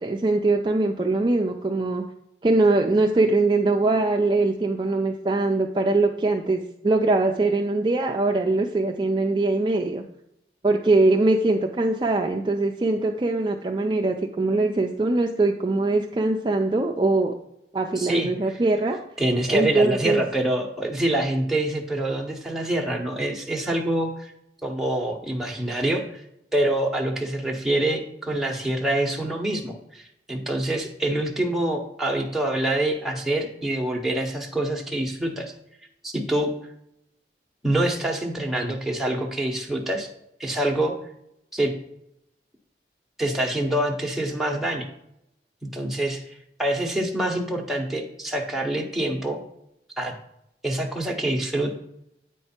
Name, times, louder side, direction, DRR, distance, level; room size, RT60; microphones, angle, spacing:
voice 1, 0.0-2.0 2.4-10.0 10.6-17.3 17.7-19.0 19.5-20.2, right 2 dB, 25° right, 2 dB, 0.4 m, -22 dB
voice 2, 18.0-18.6 19.2-24.3 24.6-26.2 26.5-35.5 36.0-36.5 37.6-40.1 40.4-40.9 41.5-41.7 43.2-44.9 45.6-49.4 50.0-50.1 50.6-51.7, right 1 dB, ahead, 0 dB, 0.9 m, -26 dB
8.7 x 4.5 x 4.3 m, 0.79 s
head